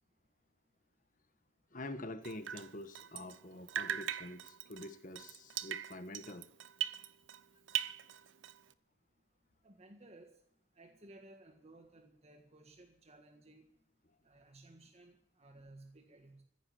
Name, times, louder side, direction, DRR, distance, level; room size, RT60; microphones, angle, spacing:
voice 1, 1.7-6.5, left 1 dB, 45° left, 10 dB, 1.4 m, -46 dB
Drip, 2.2-3.4 3.7-7.4 7.7-8.7, right 10 dB, 75° right, 0.7 m, -40 dB
voice 2, 9.6-10.3 10.7-13.7 14.2-16.4, right 2 dB, 35° right, 4 dB, 1.7 m, -58 dB
15.0 x 10.0 x 9.4 m, 0.70 s
head